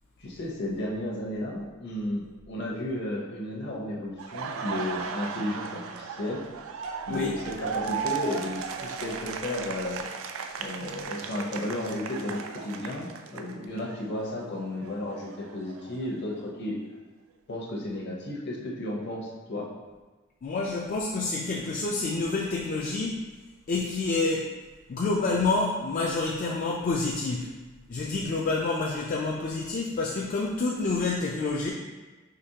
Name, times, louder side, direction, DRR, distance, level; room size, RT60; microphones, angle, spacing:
voice 1, 0.2-6.4 7.1-10.1 10.6-16.8 17.5-19.7, left 1 dB, 55° left, -2 dB, 0.9 m, -33 dB
Laughter, 4.2-14.0 14.3-16.4, right 6 dB, 80° right, 0.3 m, -36 dB
voice 2, 20.4-23.2 23.7-24.6 24.9-27.5 27.9-31.7, left 3 dB, 40° left, -2 dB, 0.3 m, -28 dB
5.0 x 3.0 x 2.8 m, 1.2 s
head